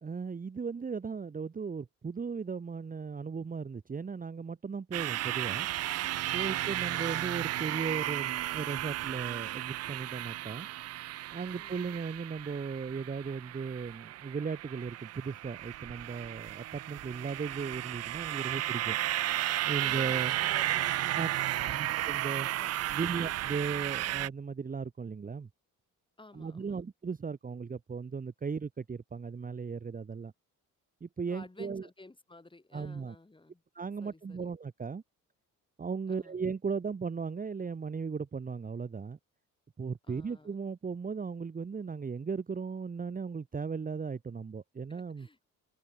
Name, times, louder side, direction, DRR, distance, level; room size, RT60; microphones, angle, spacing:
voice 1, 0.0-5.7 6.3-10.7 11.3-19.0 19.6-20.3 21.1-21.3 21.6-22.5 22.9-25.5 26.3-30.3 31.0-31.9 32.7-33.1 33.7-35.0 35.8-39.2 39.8-45.3, right 5 dB, 25° right, 1.3 m, -37 dB
sound 1, 4.9-24.3, right 14 dB, 50° right, 0.4 m, -34 dB
voice 2, 6.5-7.0 11.5-12.0 18.5-19.3 19.8-22.0 22.3-23.3 26.2-26.8 31.3-33.6 34.0-34.5 36.1-36.4 40.0-40.6 44.9-45.4, left 2 dB, 15° left, 5.7 m, -54 dB
cardioid pair, 100°, 33 cm